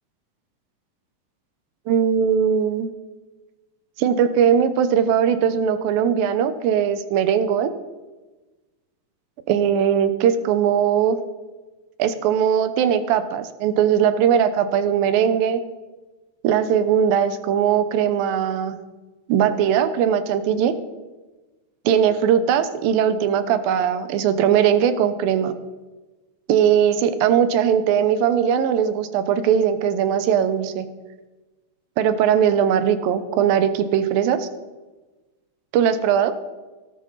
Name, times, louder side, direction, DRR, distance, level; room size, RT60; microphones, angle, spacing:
voice 1, 1.9-2.9 4.0-7.7 9.5-11.2 12.0-15.6 16.4-18.8 19.3-20.7 21.9-25.5 26.5-30.9 32.0-34.5 35.7-36.4, right 8 dB, 90° right, 11 dB, 2.7 m, -19 dB
17.5 x 12.0 x 4.1 m, 1.2 s
omnidirectional pair, 4.0 m